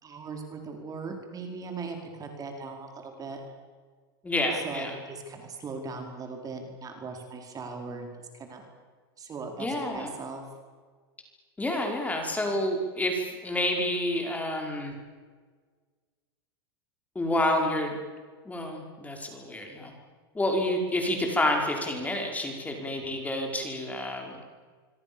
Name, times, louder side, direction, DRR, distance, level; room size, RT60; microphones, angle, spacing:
voice 1, 0.0-3.4 4.6-8.7 9.2-10.4, right 4 dB, 25° right, 4 dB, 5.0 m, -39 dB
voice 2, 4.2-5.0 9.6-10.1 11.6-15.0 17.2-18.0 18.5-19.9 20.3-24.5, left 1 dB, 10° left, 3 dB, 5.3 m, -29 dB
25.5 x 25.0 x 7.2 m, 1.5 s
hypercardioid pair, 115°, 13 cm